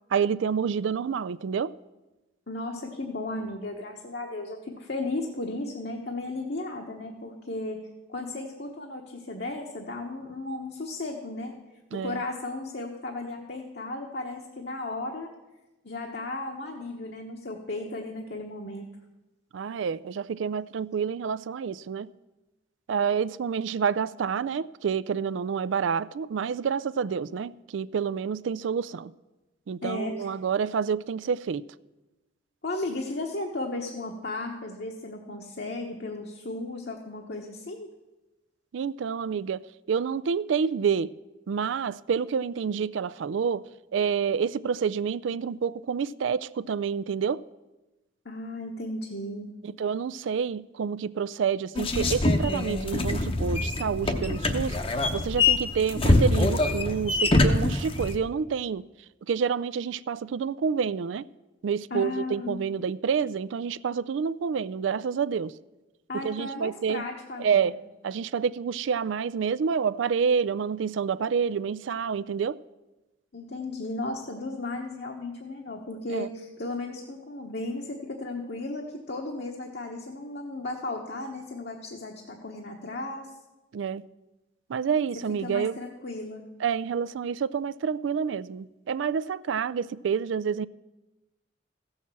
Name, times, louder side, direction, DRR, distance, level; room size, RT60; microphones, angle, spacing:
voice 1, 0.1-1.7 11.9-12.2 19.5-22.1 22.9-29.1 29.7-31.6 38.7-39.6 39.9-41.1 41.5-43.6 43.9-47.4 49.6-54.8 55.1-58.8 59.3-61.3 61.6-65.5 66.1-67.0 67.4-67.8 68.0-72.6 76.1-76.3 83.7-84.0 84.7-85.8 86.6-90.7, right 6 dB, 75° right, 0.4 m, -28 dB
voice 2, 2.5-7.8 8.1-11.6 11.9-15.3 15.8-18.8 29.8-30.3 32.6-37.9 48.2-49.5 61.9-62.6 66.1-67.7 73.3-83.3 85.4-86.4, left 2 dB, 60° left, 1.1 m, -35 dB
sound 1, 51.8-58.2, left 2 dB, 30° left, 0.8 m, -24 dB
15.0 x 6.5 x 7.2 m
head